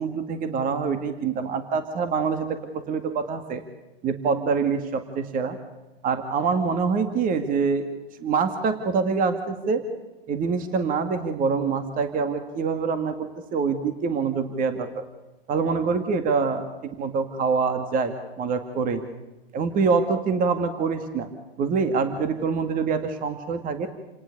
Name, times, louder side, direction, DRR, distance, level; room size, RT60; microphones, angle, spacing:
voice 1, 0.0-3.6 4.0-5.6 6.0-7.8 8.2-9.8 10.3-15.0 15.5-19.0 19.5-21.3 21.6-23.9, right 5 dB, 25° right, 8 dB, 2.2 m, -25 dB
29.0 x 19.0 x 6.8 m, 1.1 s
hypercardioid pair, 120°, 30 cm